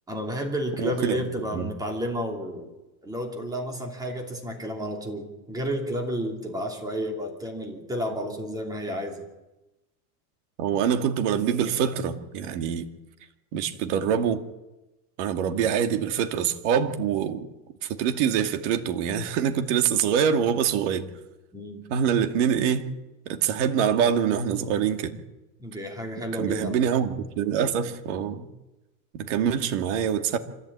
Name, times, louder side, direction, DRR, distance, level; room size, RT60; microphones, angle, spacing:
voice 1, 0.1-2.7 3.0-9.3 21.5-21.8 25.6-26.8, equal, 10° right, 2.7 m, -31 dB
voice 2, 0.8-1.3 1.5-1.7 10.6-12.9 13.5-14.4 15.2-17.5 17.8-21.1 21.9-22.9 23.3-25.2 26.3-28.5 29.1-30.4, right 8 dB, 50° right, 2.2 m, -25 dB
26.0 x 15.0 x 8.7 m
supercardioid pair, 175°, 45 cm